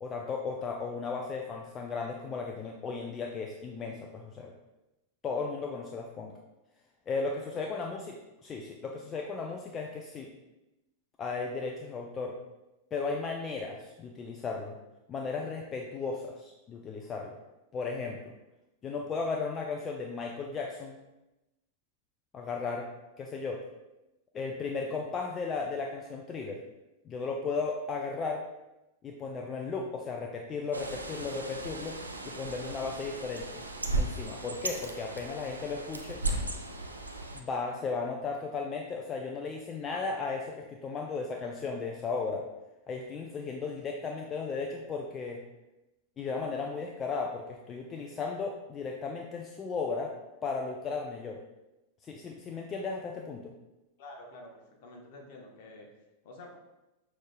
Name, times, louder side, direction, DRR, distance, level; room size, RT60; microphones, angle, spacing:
voice 1, 0.0-4.5 5.2-6.3 7.1-8.2 8.4-10.3 11.2-12.4 12.9-14.7 15.1-17.4 17.7-18.2 18.8-21.0 22.3-22.9 23.2-23.6 24.3-26.6 27.1-28.4 29.0-32.0 32.3-33.6 33.9-36.2 37.3-42.4 42.9-45.4 46.2-50.1 50.4-51.4 52.0-53.5, left 4 dB, 25° left, 1 dB, 0.4 m, -35 dB
Bird, 30.7-37.4, right 2 dB, 80° right, 0.4 m, -36 dB
voice 2, 54.0-55.9 56.2-56.6, left 2 dB, 50° left, 0 dB, 1.0 m, -48 dB
6.3 x 3.3 x 2.3 m, 0.98 s
figure-of-eight pair, 90°, 0 cm